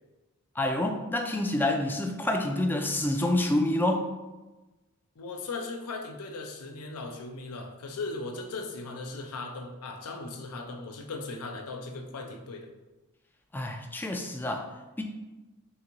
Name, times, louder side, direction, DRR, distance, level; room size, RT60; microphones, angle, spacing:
voice 1, 0.6-4.1 13.5-14.7 15.0-15.1, left 1 dB, 10° left, 3 dB, 0.3 m, -27 dB
voice 2, 5.2-12.7, left 3 dB, 80° left, 3 dB, 0.5 m, -38 dB
3.9 x 3.4 x 2.9 m, 1.1 s
head